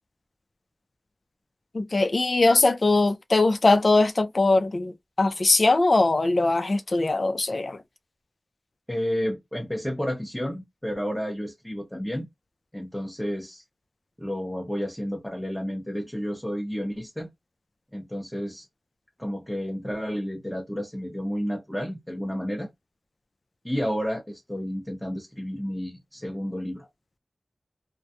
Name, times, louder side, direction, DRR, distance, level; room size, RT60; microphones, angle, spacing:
voice 1, 1.7-7.8, left 2 dB, 55° left, 0.4 m, -21 dB
voice 2, 8.9-12.3 12.7-13.6 14.2-17.3 17.9-18.7 19.2-22.7 23.6-26.9, equal, 5° left, 0.8 m, -31 dB
2.3 x 2.1 x 2.7 m
cardioid pair, 40°, 0 cm